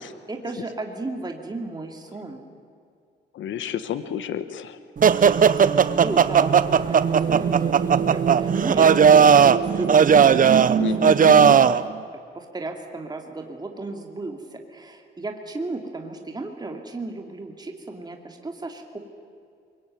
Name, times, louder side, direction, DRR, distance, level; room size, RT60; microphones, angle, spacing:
voice 1, 0.3-2.4 5.9-11.4 12.3-19.0, right 2 dB, 20° right, 3 dB, 2.7 m, -34 dB
voice 2, 3.3-4.8 10.8-11.6, left 9 dB, 70° left, 12 dB, 1.4 m, -30 dB
sound 1, 5.0-11.8, right 7 dB, 45° right, 0.9 m, -17 dB
24.0 x 22.0 x 9.3 m, 2.3 s
cardioid pair, 90°, 20 cm